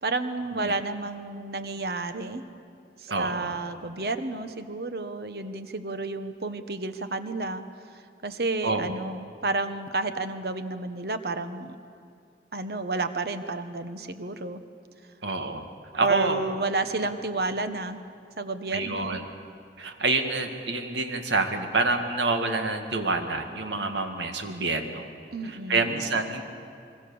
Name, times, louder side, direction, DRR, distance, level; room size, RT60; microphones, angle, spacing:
voice 1, 0.0-2.4 3.0-7.6 7.9-11.8 12.5-14.6 16.0-18.0 18.4-19.2 25.3-26.1, right 3 dB, 60° right, 10 dB, 1.2 m, -31 dB
voice 2, 3.1-3.5 8.6-9.0 15.2-15.7 15.9-16.4 18.7-19.2 19.8-25.1 25.4-26.4, right 3 dB, 85° right, 6 dB, 2.0 m, -27 dB
26.0 x 22.5 x 7.0 m, 2.4 s
head